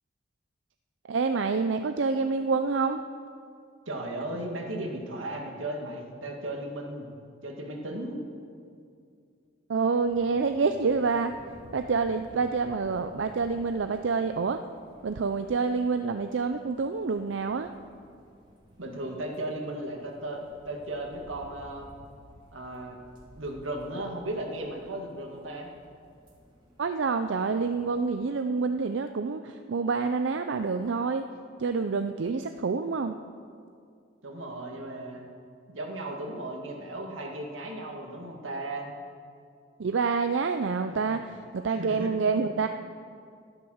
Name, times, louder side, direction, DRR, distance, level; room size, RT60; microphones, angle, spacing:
voice 1, 1.1-3.0 9.7-11.3 11.7-14.6 15.0-17.7 26.8-31.2 31.6-33.2 39.8-42.7, right 4 dB, 70° right, 8 dB, 0.5 m, -27 dB
voice 2, 3.9-7.1 7.4-8.2 18.8-21.9 22.5-23.0 23.3-25.7 34.2-35.3 35.7-38.9 40.9-41.2 41.8-42.1, right 1 dB, 90° right, 2 dB, 1.9 m, -36 dB
sound 1, 10.0-28.1, equal, 25° right, 2.1 m, -54 dB
11.5 x 11.5 x 6.4 m, 2.4 s
head